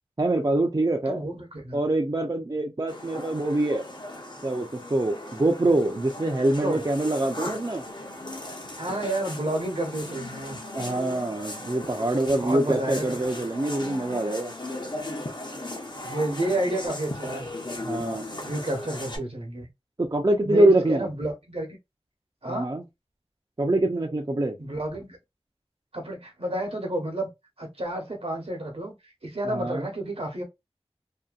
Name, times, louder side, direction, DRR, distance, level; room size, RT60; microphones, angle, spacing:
voice 1, 0.2-1.3 1.7-3.8 4.4-7.8 10.7-14.5 17.8-18.2 20.0-21.1 22.5-22.8 23.6-24.6 29.5-29.8, right 1 dB, 35° right, 0.4 m, -24 dB
voice 2, 1.1-1.8 6.6-6.8 8.8-10.6 12.4-13.5 16.0-17.5 18.4-19.7 20.4-21.7 22.4-22.7 24.6-25.2 25.9-27.3 27.6-28.9 29.2-30.4, right 1 dB, 70° right, 0.9 m, -30 dB
sound 1, 2.9-19.2, left 1 dB, 45° left, 0.7 m, -37 dB
2.7 x 2.2 x 2.3 m
wide cardioid pair, 40°, 11 cm